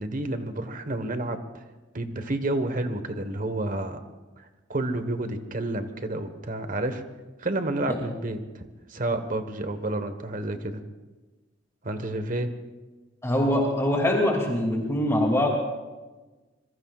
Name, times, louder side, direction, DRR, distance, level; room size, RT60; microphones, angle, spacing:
voice 1, 0.0-1.6 1.9-4.0 4.4-7.0 7.4-10.8 11.8-12.5, right 1 dB, 45° right, 8 dB, 1.3 m, -30 dB
voice 2, 13.2-15.5, left 1 dB, 15° left, -1 dB, 2.5 m, -23 dB
26.5 x 22.5 x 2.4 m, 1.2 s
head